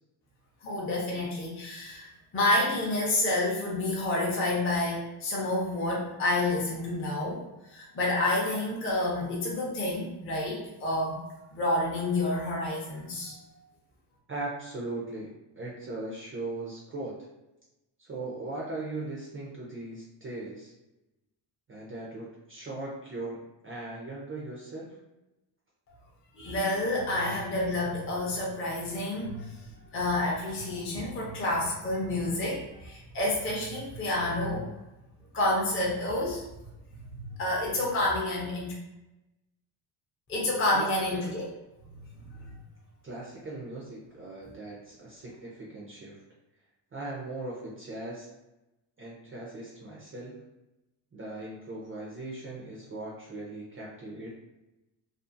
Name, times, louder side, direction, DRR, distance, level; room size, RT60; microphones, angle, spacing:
voice 1, 0.6-7.4 7.7-11.2 11.5-13.6 26.3-34.7 35.3-36.4 37.1-38.7 40.3-41.5 42.3-42.5, left 1 dB, 25° left, -5 dB, 0.6 m, -29 dB
voice 2, 14.3-17.2 18.0-20.7 21.7-25.0 40.7-40.9 41.1-41.3 43.0-46.2 46.9-48.3 49.0-50.4 51.1-54.3, right 2 dB, 30° right, -4 dB, 0.4 m, -39 dB
2.6 x 2.4 x 2.4 m, 0.97 s
cardioid pair, 135°, 48 cm